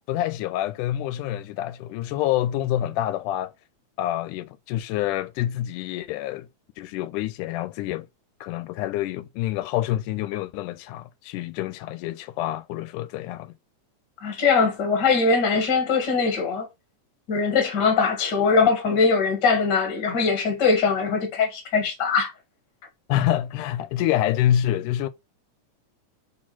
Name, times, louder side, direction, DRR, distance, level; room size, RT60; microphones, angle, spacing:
voice 1, 0.1-3.5 4.0-6.5 6.8-8.1 8.4-13.5 23.1-25.1, left 12 dB, 85° left, 2.0 m, -27 dB
voice 2, 14.2-16.7 17.3-22.3, left 5 dB, 40° left, 2.0 m, -21 dB
4.6 x 4.2 x 5.8 m
omnidirectional pair, 3.6 m